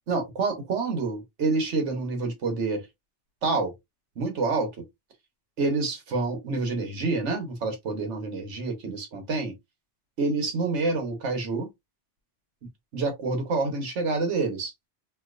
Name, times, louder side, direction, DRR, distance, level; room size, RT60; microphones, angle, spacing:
voice 1, 0.1-2.9 3.4-3.7 4.2-4.7 5.6-9.5 10.2-11.7 12.9-14.7, right 3 dB, 85° right, 1.4 m, -27 dB
3.2 x 2.8 x 2.4 m
omnidirectional pair, 1.2 m